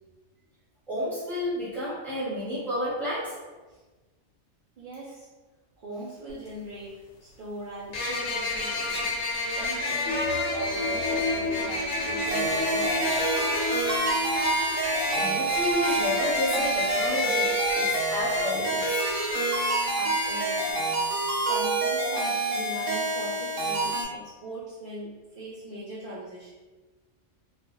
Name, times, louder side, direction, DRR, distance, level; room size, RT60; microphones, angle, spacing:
voice 1, 0.9-3.4 15.1-19.0, left 1 dB, ahead, -9 dB, 0.7 m, -31 dB
voice 2, 4.8-5.3 5.8-6.9 7.2-9.1 9.5-13.5 19.9-20.9 21.5-26.5, right 1 dB, 60° right, -6 dB, 0.5 m, -40 dB
sound 1, 6.3-6.4 7.9-20.7, left 3 dB, 85° left, 1.0 m, -30 dB
sound 2, 10.1-16.3 16.6-16.7, left 2 dB, 60° left, 0.7 m, -33 dB
sound 3, 12.3-24.0, right 3 dB, 80° right, 1.0 m, -28 dB
2.3 x 2.2 x 2.9 m, 1.2 s
omnidirectional pair, 1.3 m